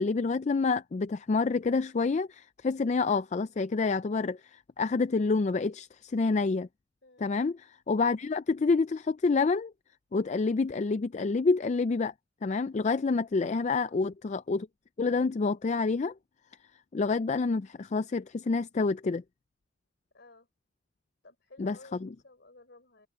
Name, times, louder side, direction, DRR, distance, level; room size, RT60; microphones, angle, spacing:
voice 1, 0.0-6.7 7.2-9.7 10.1-12.1 12.4-14.7 15.0-16.1 16.9-19.2 21.6-21.8 22.0-22.1, left 4 dB, 35° left, 0.4 m, -28 dB
voice 2, 7.0-7.4 13.7-14.0 20.1-20.5 21.2-23.1, left 2 dB, 60° left, 4.0 m, -54 dB
head